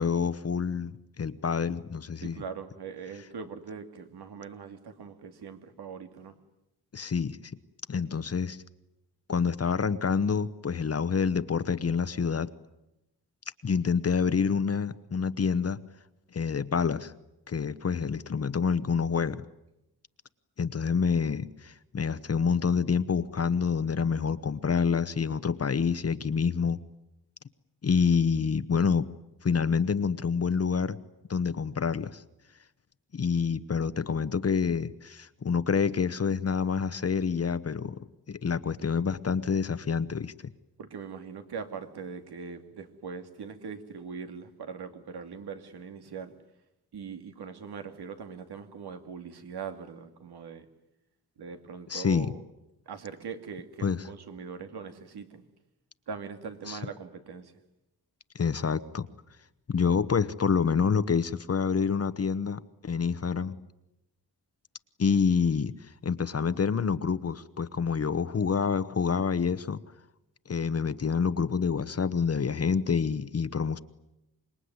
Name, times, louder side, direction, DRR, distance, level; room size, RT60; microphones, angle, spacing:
voice 1, 0.0-2.4 6.9-7.4 7.9-8.6 9.3-12.5 13.6-15.8 16.3-17.1 17.5-19.4 20.6-26.8 27.8-29.1 29.4-31.0 31.3-32.2 33.1-40.5 51.9-52.3 53.8-54.0 56.7-56.8 58.3-59.1 59.7-63.6 65.0-69.8 70.5-73.8, left 6 dB, 40° left, 14 dB, 1.0 m, -27 dB
voice 2, 2.2-6.4 40.8-46.3 46.9-50.7 51.4-52.4 52.9-55.5 56.1-57.5, right 6 dB, 85° right, 7 dB, 2.6 m, -41 dB
26.0 x 22.0 x 9.6 m, 0.89 s
wide cardioid pair, 140°, 38 cm